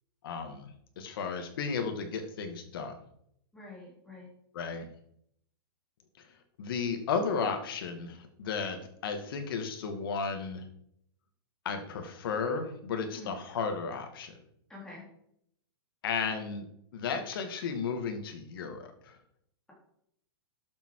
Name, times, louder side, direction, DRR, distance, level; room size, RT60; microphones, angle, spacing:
voice 1, 0.2-0.7 1.0-2.9 4.5-4.9 6.2-6.3 6.6-10.7 11.6-14.4 16.0-19.2, left 5 dB, 60° left, 6 dB, 2.3 m, -34 dB
voice 2, 3.5-4.3 13.1-13.3 14.7-15.1, left 3 dB, 5° left, -4 dB, 3.7 m, -46 dB
12.0 x 7.4 x 5.0 m, 0.73 s
supercardioid pair, 165°, 13 cm